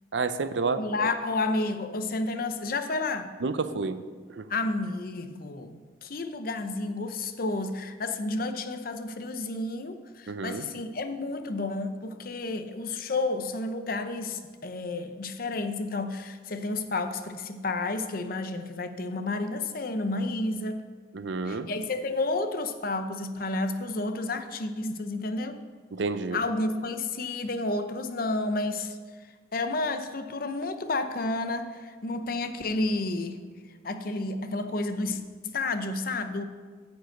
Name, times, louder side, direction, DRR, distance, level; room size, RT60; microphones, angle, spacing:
voice 1, 0.1-1.1 3.4-4.0 4.4-4.5 10.3-10.7 21.1-21.7 25.9-26.4, right 4 dB, 75° right, 12 dB, 0.6 m, -30 dB
voice 2, 0.8-3.3 4.5-20.9 21.5-25.6 26.3-29.0 29.5-33.4 33.8-36.4, left 2 dB, 50° left, 9 dB, 0.7 m, -31 dB
10.5 x 5.3 x 7.9 m, 1.5 s
head